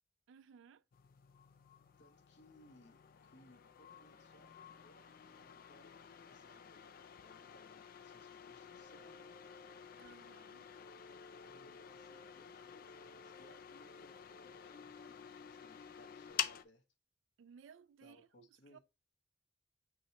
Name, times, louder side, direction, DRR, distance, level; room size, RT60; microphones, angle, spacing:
voice 1, 0.3-0.8 10.0-10.7 17.4-18.8, right 6 dB, 75° right, 0.3 m, -60 dB
sound 1, 0.9-16.6, left 10 dB, 50° left, 0.3 m, -49 dB
voice 2, 2.0-6.8 7.2-9.4 11.4-16.8 18.0-18.8, left 1 dB, 65° left, 1.1 m, -65 dB
sound 2, 8.8-16.3, equal, 90° left, 1.3 m, -62 dB
6.2 x 2.8 x 3.0 m
head